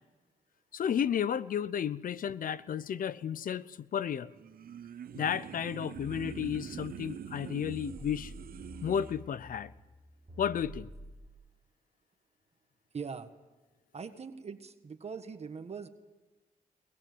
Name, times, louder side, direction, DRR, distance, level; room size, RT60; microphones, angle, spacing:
voice 1, 0.7-4.3 5.1-8.3 8.8-9.7 10.4-10.9, left 8 dB, 65° left, 17 dB, 0.7 m, -33 dB
sound 1, 4.3-9.2, right 9 dB, 70° right, 0.8 m, -44 dB
sound 2, 6.0-11.3, equal, 25° right, 2.7 m, -49 dB
voice 2, 12.9-13.3 13.9-15.9, right 5 dB, 45° right, 8 dB, 1.4 m, -41 dB
22.0 x 21.0 x 7.9 m, 1.2 s
cardioid pair, 100°, 16 cm